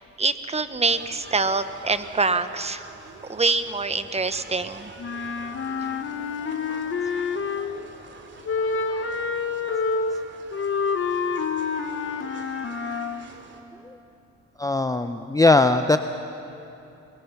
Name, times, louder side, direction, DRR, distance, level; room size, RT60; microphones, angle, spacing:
voice 1, 0.0-2.9 3.3-4.9, right 3 dB, 20° right, 11 dB, 1.0 m, -25 dB
sound 1, 0.8-13.6, right 3 dB, 40° right, 2.6 m, -45 dB
Wind instrument woodwind instrument, 5.0-7.9 8.4-13.3, left 5 dB, 45° left, 1.3 m, -28 dB
voice 2, 14.6-16.0, left 2 dB, 10° left, 9 dB, 0.6 m, -19 dB
24.5 x 22.0 x 5.9 m, 3.0 s
cardioid pair, 90°, 30 cm